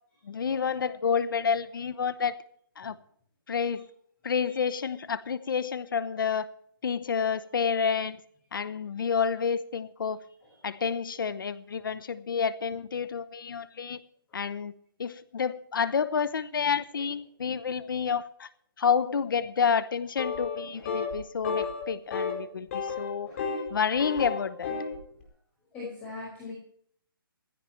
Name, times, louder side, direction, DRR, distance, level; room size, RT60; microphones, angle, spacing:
voice 1, 0.2-2.3 2.8-2.9 3.5-3.9 4.2-6.5 6.8-8.2 8.5-10.2 10.6-14.0 14.3-14.7 15.0-18.5 18.8-23.3 23.7-24.7, left 6 dB, 65° left, 0.9 m, -29 dB
sound 1, 20.2-20.6 20.9-21.1 21.4-21.8 22.1-22.3 22.7-23.7 24.0-25.0, left 5 dB, 35° left, 4.5 m, -31 dB
voice 2, 25.7-26.5, left 3 dB, 10° left, 5.4 m, -40 dB
17.0 x 15.5 x 3.3 m
hypercardioid pair, 170°, 12 cm